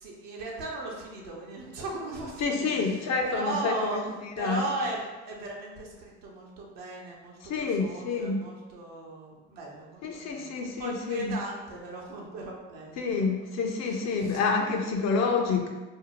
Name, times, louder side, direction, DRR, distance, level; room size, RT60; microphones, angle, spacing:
voice 1, 0.0-4.0 4.4-13.4 13.8-14.4, right 2 dB, 70° right, -2 dB, 0.7 m, -37 dB
voice 2, 2.4-4.0 4.4-4.6 7.5-8.4 10.0-11.3 13.0-15.7, left 4 dB, 50° left, 2 dB, 0.5 m, -28 dB
2.6 x 2.0 x 2.9 m, 1.2 s
hypercardioid pair, 60°, 34 cm